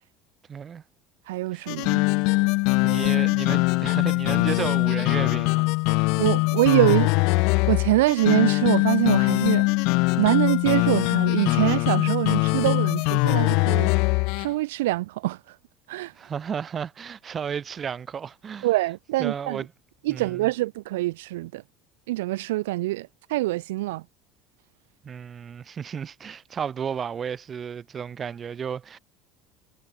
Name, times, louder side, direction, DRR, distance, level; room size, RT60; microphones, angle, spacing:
voice 1, 0.5-0.8 1.5-1.7 2.8-6.1 16.2-18.7 19.2-19.7 20.1-20.5 25.0-29.0, right 7 dB, 35° right, 3.6 m, -33 dB
voice 2, 1.3-2.0 6.2-7.1 7.5-9.7 10.2-13.9 14.4-15.6 15.9-16.1 18.6-19.7 20.0-21.6 22.1-24.0, right 18 dB, 90° right, 1.9 m, -24 dB
sound 1, 1.7-14.5, left 29 dB, 70° left, 2.3 m, -22 dB
supercardioid pair, 95°, 0 cm